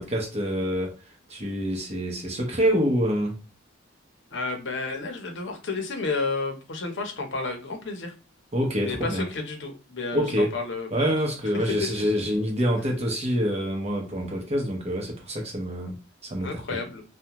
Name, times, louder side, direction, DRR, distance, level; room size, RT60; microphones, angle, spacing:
voice 1, 0.0-3.4 8.5-9.2 10.1-10.5 10.9-16.0 16.2-16.8, equal, 35° right, 0.8 m, -26 dB
voice 2, 4.3-8.1 8.8-10.9 11.5-11.7 16.4-17.0, left 3 dB, 65° left, 0.7 m, -31 dB
2.4 x 2.2 x 2.9 m
head